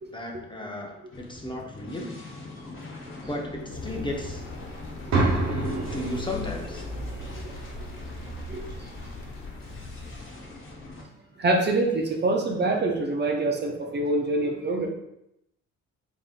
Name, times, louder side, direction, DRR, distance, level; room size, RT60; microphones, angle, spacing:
voice 1, 0.1-2.3 3.2-4.4 5.5-6.9, left 1 dB, 15° left, 0 dB, 0.6 m, -35 dB
sound 1, 1.1-11.0, left 2 dB, 45° left, 1.2 m, -43 dB
sound 2, 3.7-10.4, left 3 dB, 65° left, 0.6 m, -41 dB
sound 3, 5.1-9.1, right 2 dB, 65° right, 1.0 m, -30 dB
voice 2, 7.2-7.5 8.5-8.7 9.0-9.1 11.4-14.9, right 2 dB, 35° right, 2 dB, 0.6 m, -25 dB
3.9 x 3.5 x 2.4 m, 0.82 s
cardioid pair, 90°, 30 cm